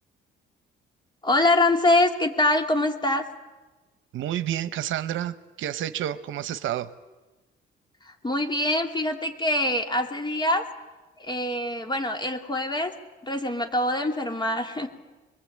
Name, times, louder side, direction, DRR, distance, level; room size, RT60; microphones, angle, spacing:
voice 1, 1.2-3.2 8.0-10.7 11.2-12.9 13.2-14.9, left 1 dB, 20° left, 5 dB, 2.8 m, -24 dB
voice 2, 4.1-6.9, right 11 dB, 75° right, 12 dB, 0.9 m, -30 dB
24.5 x 21.5 x 8.7 m, 1.2 s
cardioid pair, 90°, 20 cm